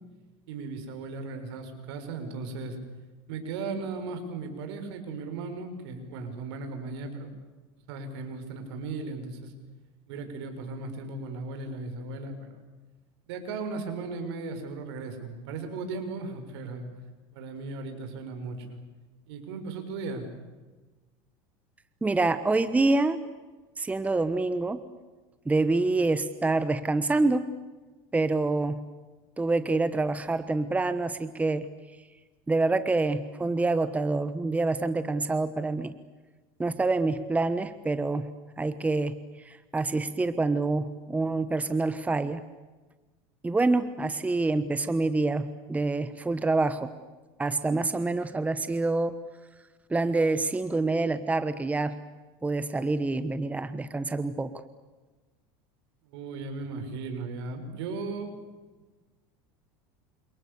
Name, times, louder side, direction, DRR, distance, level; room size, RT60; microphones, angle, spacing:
voice 1, 0.5-2.8 3.3-7.3 7.9-9.5 10.1-12.5 13.3-16.9 17.3-18.8 19.3-20.3 56.1-58.3, right 3 dB, 75° right, 7 dB, 6.1 m, -36 dB
voice 2, 22.0-23.2 23.8-24.8 25.4-27.5 28.1-28.8 29.4-31.7 32.5-35.9 36.6-38.3 38.6-42.4 43.4-46.9 47.4-49.2 49.9-52.0 52.4-54.5, right 3 dB, 10° right, 13 dB, 1.2 m, -26 dB
29.5 x 27.0 x 7.0 m, 1.2 s
supercardioid pair, 120°, 13 cm